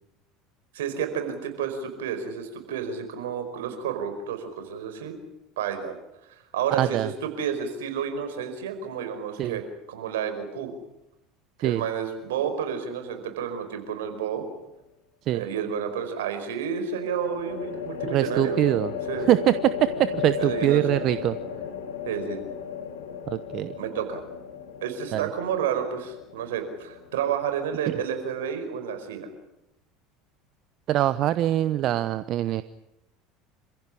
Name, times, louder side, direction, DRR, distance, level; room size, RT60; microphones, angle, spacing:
voice 1, 0.7-5.2 5.6-5.9 6.5-10.7 11.6-14.4 15.3-18.6 19.1-19.5 20.4-21.1 22.0-22.4 23.8-24.2 24.8-29.3, right 7 dB, 80° right, 7 dB, 5.0 m, -30 dB
voice 2, 6.7-7.1 9.4-9.6 11.6-11.8 15.2-15.5 18.1-18.9 19.2-21.4 23.3-23.7 25.1-25.3 27.9-28.0 30.9-32.6, right 13 dB, 55° right, 13 dB, 0.9 m, -23 dB
sound 1, 13.8-14.4 17.0-28.3, left 8 dB, 75° left, 4.0 m, -36 dB
27.5 x 15.5 x 10.0 m, 0.88 s
hypercardioid pair, 75°, 0 cm